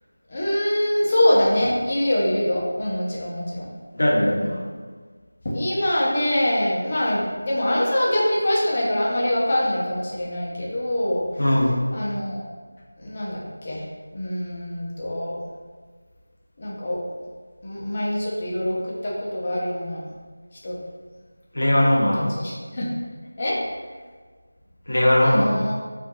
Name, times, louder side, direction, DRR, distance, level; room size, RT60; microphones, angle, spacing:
voice 1, 0.3-3.7 4.2-4.4 5.4-11.3 11.9-12.4 13.0-13.8 14.1-15.4 16.6-17.3 17.6-20.0 20.6-20.8 22.1-22.9 23.4-23.6 25.2-25.7, left 1 dB, 25° left, -5 dB, 0.6 m, -24 dB
voice 2, 3.9-4.6 11.4-11.8 21.5-22.4 24.9-25.7, left 1 dB, 65° left, -3 dB, 0.7 m, -19 dB
5.5 x 2.5 x 2.3 m, 1.5 s
figure-of-eight pair, 175°, 0 cm